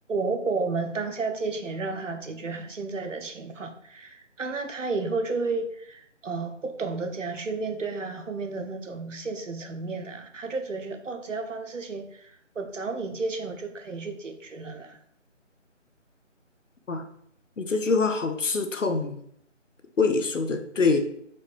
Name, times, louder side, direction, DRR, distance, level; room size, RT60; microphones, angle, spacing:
voice 1, 0.1-15.0, right 3 dB, 75° right, 5 dB, 0.7 m, -32 dB
voice 2, 17.6-19.2 20.0-21.0, left 4 dB, 75° left, 6 dB, 0.7 m, -24 dB
4.3 x 2.3 x 3.1 m, 0.70 s
figure-of-eight pair, 160°, 38 cm